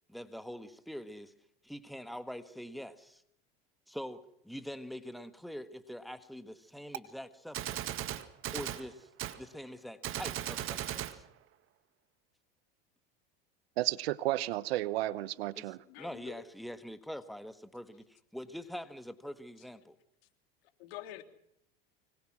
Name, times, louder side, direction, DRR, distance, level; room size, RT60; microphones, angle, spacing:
voice 1, 0.1-1.3 1.6-3.2 3.9-8.0 8.5-9.1 9.4-11.2 15.5-20.0, equal, ahead, 1.5 m, -44 dB
Gunshot gunfire, 6.9-7.0 7.5-8.8 9.2-9.4 10.0-11.2, right 12 dB, 45° right, 1.9 m, -37 dB
voice 2, 13.8-15.8, right 16 dB, 90° right, 1.0 m, -32 dB
voice 3, 15.9-16.4 20.8-21.2, left 14 dB, 80° left, 3.1 m, -46 dB
25.0 x 21.0 x 6.2 m
supercardioid pair, 115°, 30 cm